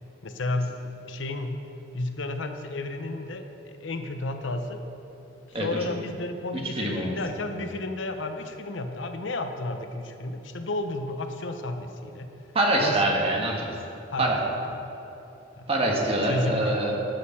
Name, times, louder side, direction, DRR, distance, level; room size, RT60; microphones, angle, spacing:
voice 1, 0.2-1.6 1.9-4.8 5.5-12.3 12.8-13.1 14.1-14.9 15.6-15.7 16.3-16.9, left 2 dB, 75° left, 7 dB, 0.8 m, -32 dB
voice 2, 6.5-7.2 12.5-13.7 14.2-14.4 15.7-16.9, right 1 dB, 30° right, -1 dB, 1.5 m, -25 dB
12.5 x 6.5 x 5.8 m, 3.0 s
head